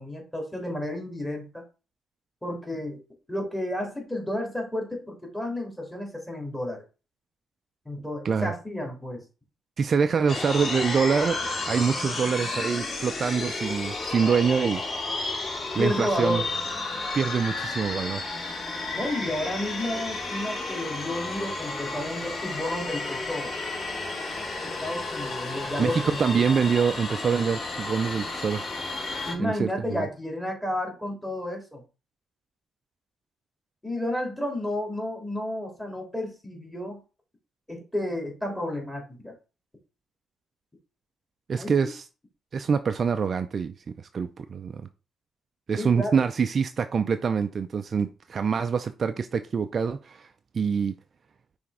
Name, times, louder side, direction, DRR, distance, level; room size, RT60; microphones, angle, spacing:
voice 1, 0.0-1.6 2.4-3.0 3.3-6.8 7.8-9.2 15.8-16.4 18.9-23.5 24.6-26.4 29.2-31.8 33.8-37.0 37.7-39.3 41.6-41.7 45.8-46.2, left 1 dB, 10° left, 3.0 m, -31 dB
voice 2, 9.8-11.4 11.7-14.8 15.7-16.4 17.1-18.2 25.8-28.6 29.4-30.1 41.5-42.0 42.5-44.8 45.7-50.3 50.5-51.0, right 6 dB, 45° right, 0.4 m, -25 dB
sound 1, 10.3-29.3, left 3 dB, 45° left, 2.3 m, -32 dB
5.8 x 3.4 x 4.9 m
cardioid pair, 90°, 0 cm